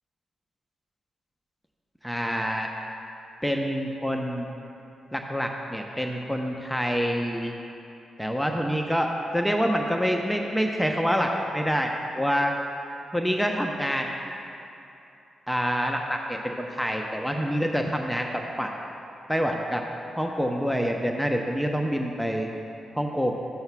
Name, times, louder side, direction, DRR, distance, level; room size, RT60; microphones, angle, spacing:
voice 1, 2.0-2.7 3.4-4.5 5.1-7.5 8.2-12.5 13.1-14.1 15.5-18.7 19.3-19.8 20.2-22.5 23.0-23.3, equal, ahead, 2 dB, 0.8 m, -26 dB
14.0 x 7.9 x 2.3 m, 2.8 s
hypercardioid pair, 40°, 0 cm